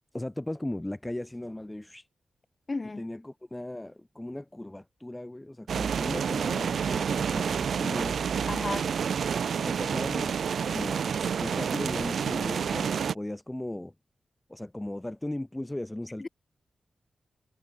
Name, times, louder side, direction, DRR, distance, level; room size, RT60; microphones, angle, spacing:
voice 1, 0.1-2.1 3.0-8.3 9.5-10.4 10.7-13.9 14.5-16.3, left 1 dB, 10° left, 4.4 m, -37 dB
voice 2, 2.7-3.0 8.5-8.9 16.2-16.3, left 3 dB, 30° left, 7.8 m, -33 dB
sound 1, 5.7-13.1, right 7 dB, 80° right, 1.5 m, -29 dB
wide cardioid pair, 115°, 0 cm